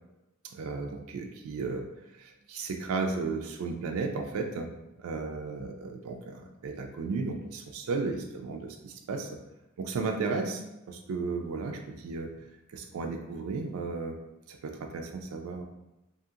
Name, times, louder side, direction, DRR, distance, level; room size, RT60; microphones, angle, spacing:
voice 1, 0.5-1.8 2.2-4.7 5.0-9.3 9.8-10.6 10.9-12.3 12.7-14.2 14.5-15.6, right 4 dB, 80° right, 3 dB, 0.3 m, -34 dB
2.7 x 2.7 x 2.4 m, 0.94 s
head